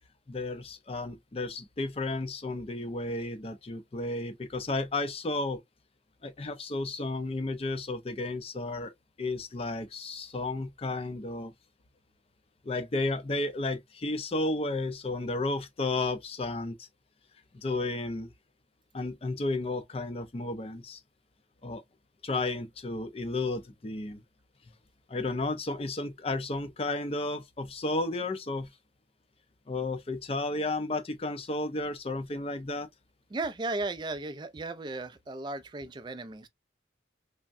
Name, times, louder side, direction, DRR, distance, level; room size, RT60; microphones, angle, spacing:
voice 1, 0.3-5.6 6.2-8.9 9.2-11.5 12.6-16.9 17.5-18.3 18.9-21.0 21.6-21.8 22.2-24.2 25.1-28.7 29.7-32.9, left 2 dB, 35° left, 0.5 m, -33 dB
voice 2, 33.3-36.5, right 2 dB, 25° right, 0.4 m, -35 dB
3.4 x 2.1 x 2.5 m
head